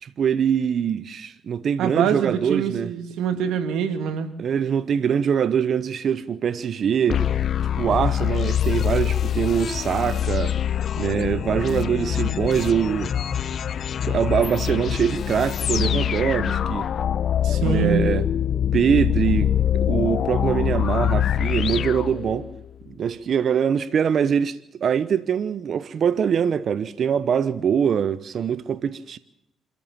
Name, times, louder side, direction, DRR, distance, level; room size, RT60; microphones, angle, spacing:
voice 1, 0.0-2.9 4.4-7.2 7.8-10.6 11.0-13.1 14.1-16.9 17.6-18.3 18.7-19.6 19.8-22.5 23.0-29.2, right 7 dB, 55° right, 0.9 m, -23 dB
voice 2, 1.8-4.3 17.4-18.1, right 7 dB, 85° right, 2.4 m, -24 dB
sound 1, 7.1-22.7, left 9 dB, 60° left, 0.8 m, -24 dB
26.5 x 14.0 x 7.3 m
cardioid pair, 90°, 0 cm